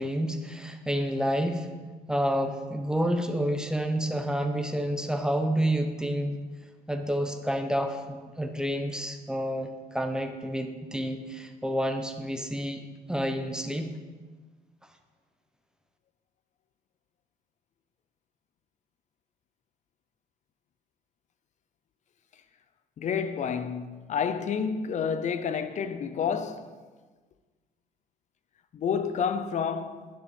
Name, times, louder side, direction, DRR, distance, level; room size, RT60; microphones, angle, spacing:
voice 1, 0.0-1.7 2.1-6.4 6.9-12.8 13.1-13.9, equal, 5° right, 0.9 m, -29 dB
voice 2, 23.0-26.7 28.7-30.1, left 6 dB, 45° left, 0.7 m, -29 dB
9.9 x 7.0 x 5.2 m
cardioid pair, 110°, 17 cm